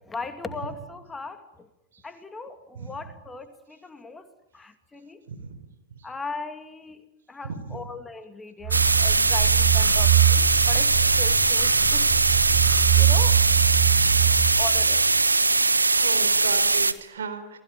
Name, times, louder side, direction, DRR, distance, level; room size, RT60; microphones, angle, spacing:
voice 1, 0.0-1.7 2.0-5.2 6.0-12.1 13.0-13.5 14.6-15.1, left 3 dB, 10° left, 8 dB, 2.5 m, -38 dB
voice 2, 5.3-5.6 7.5-7.8 13.9-14.4 16.0-17.6, right 5 dB, 65° right, 8 dB, 4.1 m, -36 dB
sound 1, 8.6-15.2, right 12 dB, 30° right, 2.2 m, -23 dB
sound 2, 8.7-16.9, right 3 dB, 80° right, 1.2 m, -21 dB
30.0 x 20.5 x 9.3 m, 0.90 s
figure-of-eight pair, 90°, 0 cm